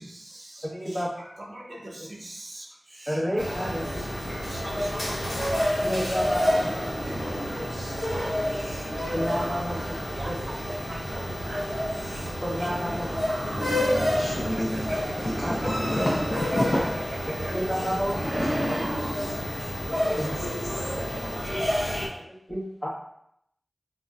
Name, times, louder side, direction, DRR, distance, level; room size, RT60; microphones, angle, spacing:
voice 1, 0.0-15.7 17.3-22.1, right 1 dB, 45° right, 1 dB, 0.5 m, -42 dB
voice 2, 0.6-1.4 3.1-3.8 5.8-6.8 8.9-9.9 10.3-10.4 12.3-13.2 15.4-15.5 17.3-18.8 20.2-20.3 22.2-22.9, equal, 15° left, -4 dB, 0.9 m, -31 dB
sound 1, 3.4-22.1, equal, 85° left, 0.8 m, -29 dB
sound 2, 6.3-7.9 8.2-11.0 13.3-17.5 17.9-21.0, equal, 25° right, 1.0 m, -37 dB
voice 3, 7.1-7.5 13.4-16.9, left 1 dB, 45° left, -5 dB, 0.5 m, -31 dB
3.9 x 2.1 x 2.3 m, 0.74 s
wide cardioid pair, 70°, 0 cm